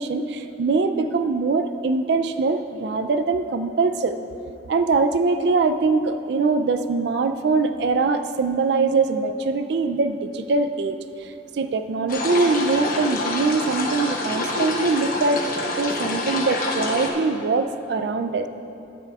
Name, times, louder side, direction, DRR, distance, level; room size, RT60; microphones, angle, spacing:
voice 1, 0.0-4.2 4.7-10.9 11.2-11.3 11.6-15.5 15.8-18.5, right 4 dB, 65° right, 9 dB, 0.3 m, -22 dB
sound 1, 12.1-17.1, left 2 dB, 50° left, 1.0 m, -27 dB
15.0 x 10.0 x 2.4 m, 2.8 s
head